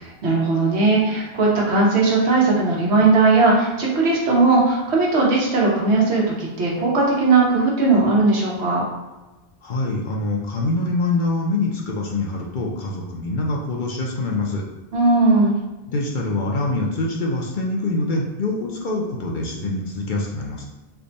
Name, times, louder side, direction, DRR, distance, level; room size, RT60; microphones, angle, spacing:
voice 1, 0.2-8.8 14.9-15.5, right 3 dB, 85° right, -3 dB, 1.3 m, -18 dB
voice 2, 9.6-14.6 15.9-20.7, left 2 dB, 55° left, -1 dB, 0.7 m, -24 dB
3.5 x 2.2 x 3.9 m, 1.1 s
omnidirectional pair, 1.1 m